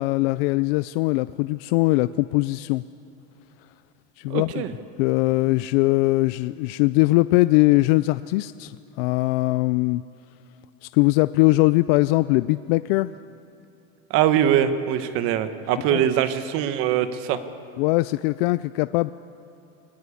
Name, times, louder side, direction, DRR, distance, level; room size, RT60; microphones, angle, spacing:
voice 1, 0.0-2.8 4.2-4.5 5.0-8.7 9.0-10.0 10.8-13.1 15.9-16.0 17.8-19.1, left 21 dB, 65° left, 14 dB, 0.5 m, -21 dB
voice 2, 4.3-4.7 14.1-17.4, right 10 dB, 45° right, 10 dB, 1.2 m, -22 dB
21.5 x 20.5 x 8.4 m, 2.9 s
cardioid pair, 170°, 31 cm